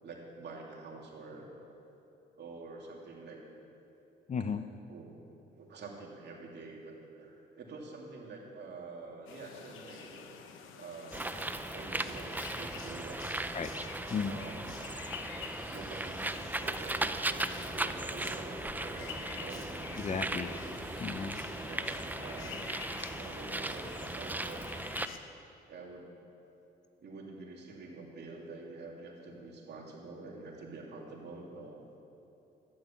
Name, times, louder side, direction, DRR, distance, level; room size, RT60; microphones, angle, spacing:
voice 1, 0.0-1.5 2.4-3.4 4.9-5.1 5.5-10.4 10.8-11.3 11.7-13.2 14.2-15.0 15.7-20.7 21.6-22.7 23.1-24.6 25.1-25.2 25.7-26.1 27.0-31.8, right 3 dB, 60° right, -2 dB, 2.8 m, -47 dB
voice 2, 4.3-4.6 13.5-13.7 14.1-14.4 20.0-20.5 21.0-21.4, left 6 dB, 35° left, 10 dB, 0.6 m, -34 dB
sound 1, 9.3-25.2, left 6 dB, 90° left, 1.0 m, -47 dB
Bird, 11.1-25.1, right 2 dB, 10° right, 0.5 m, -37 dB
12.5 x 10.5 x 7.3 m, 2.9 s
cardioid pair, 90°, 20 cm